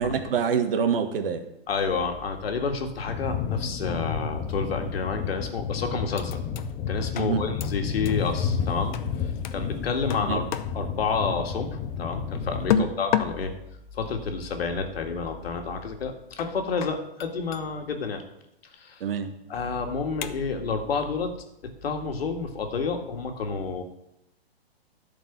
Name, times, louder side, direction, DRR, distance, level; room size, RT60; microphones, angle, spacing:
voice 1, 0.0-1.5 7.2-7.4 10.3-10.4 12.7-12.9 19.0-19.3, right 7 dB, 60° right, 7 dB, 1.6 m, -25 dB
voice 2, 1.7-6.4 6.9-10.5 10.7-13.5 13.9-18.2 18.7-19.0 19.5-21.3 21.6-23.8, left 4 dB, 70° left, 5 dB, 1.9 m, -29 dB
sound 1, 3.1-12.8, left 7 dB, 15° left, 0.4 m, -31 dB
sound 2, 6.2-6.8 7.2-8.3 8.9-9.1 9.4-9.6 10.1-10.9 12.7-13.5 15.3-15.4 16.4-17.7 20.2-20.7, left 11 dB, 50° left, 0.7 m, -30 dB
12.0 x 4.8 x 7.3 m, 0.85 s
hypercardioid pair, 140°, 31 cm